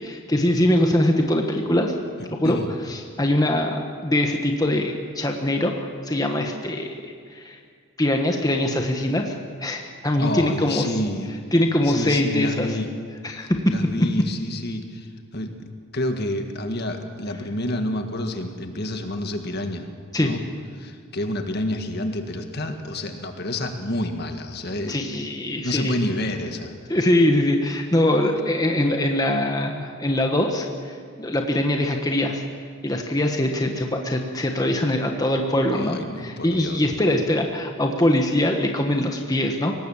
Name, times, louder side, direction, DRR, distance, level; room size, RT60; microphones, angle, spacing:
voice 1, 0.0-1.9 2.2-2.6 2.9-7.6 8.0-10.9 11.5-12.8 13.2-13.6 20.1-20.3 24.9-26.0 26.9-32.4 32.8-39.7, left 1 dB, 15° left, 3 dB, 1.4 m, -22 dB
voice 2, 10.2-11.3 11.8-12.9 13.7-15.7 15.9-19.9 20.2-20.4 20.8-25.0 25.6-26.9 35.7-36.8, left 1 dB, 50° left, 6 dB, 1.7 m, -29 dB
23.5 x 19.0 x 7.3 m, 2.1 s
head